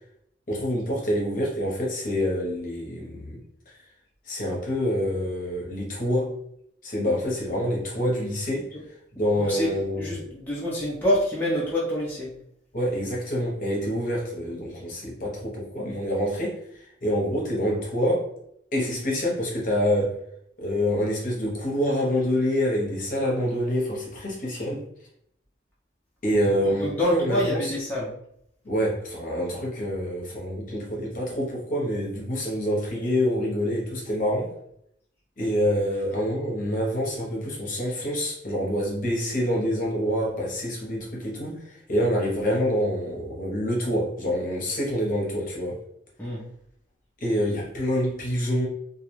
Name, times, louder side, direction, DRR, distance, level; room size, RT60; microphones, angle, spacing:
voice 1, 0.5-3.4 3.7-3.8 4.3-6.4 6.8-8.7 9.2-10.2 12.7-18.3 18.7-20.2 20.6-24.9 26.2-27.7 28.6-34.5 35.4-45.8 47.2-48.7, equal, 45° left, -3 dB, 0.8 m, -26 dB
voice 2, 9.4-9.7 10.0-12.3 26.7-28.1 46.2-46.4, left 1 dB, 10° left, -7 dB, 0.5 m, -26 dB
2.3 x 2.2 x 3.0 m, 0.72 s
head